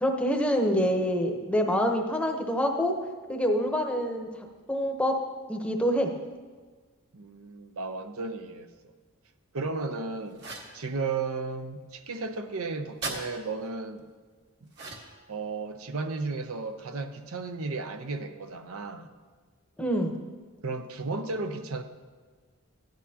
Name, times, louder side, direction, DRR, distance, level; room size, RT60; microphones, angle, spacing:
voice 1, 0.0-2.9 3.3-4.3 4.7-5.1 5.5-6.1 19.8-20.1, equal, 5° left, 2 dB, 0.8 m, -26 dB
voice 2, 7.1-8.7 9.5-10.4 10.7-14.0 14.6-14.7 15.3-19.1 20.6-21.8, right 3 dB, 75° right, 7 dB, 0.7 m, -34 dB
sound 1, 10.4-10.8 13.0-13.2 14.7-15.2, right 3 dB, 55° right, 1.5 m, -36 dB
15.0 x 10.5 x 2.8 m, 1.4 s
head